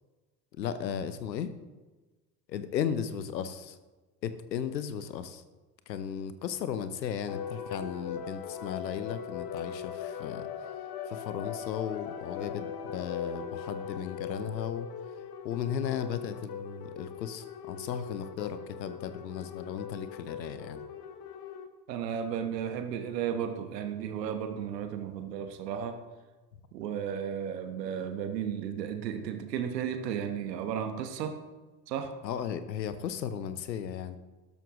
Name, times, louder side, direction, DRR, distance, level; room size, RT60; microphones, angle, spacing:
voice 1, 0.6-1.5 2.5-3.8 4.2-5.4 5.9-10.5 11.1-14.9 15.4-20.8 32.2-34.2, left 8 dB, 85° left, 12 dB, 0.9 m, -35 dB
sound 1, 7.3-21.7, left 7 dB, 50° left, 1.2 m, -40 dB
voice 2, 21.9-26.0 26.7-31.4 31.9-32.2, right 8 dB, 75° right, 7 dB, 1.3 m, -34 dB
12.5 x 12.5 x 3.1 m, 1.2 s
hypercardioid pair, 65°, 49 cm